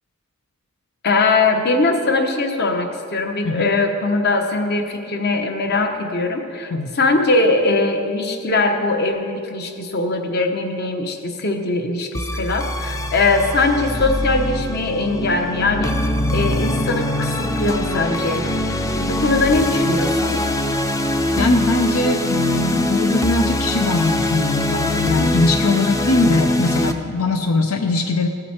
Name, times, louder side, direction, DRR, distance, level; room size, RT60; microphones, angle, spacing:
voice 1, 1.0-6.7 7.0-16.0 16.3-18.5 19.0-20.4, left 3 dB, 50° left, 5 dB, 1.1 m, -21 dB
sound 1, 12.1-26.9, left 1 dB, 15° left, 0.5 m, -22 dB
voice 2, 21.4-28.3, left 3 dB, 80° left, 5 dB, 0.7 m, -20 dB
16.0 x 8.1 x 4.3 m, 2.3 s
head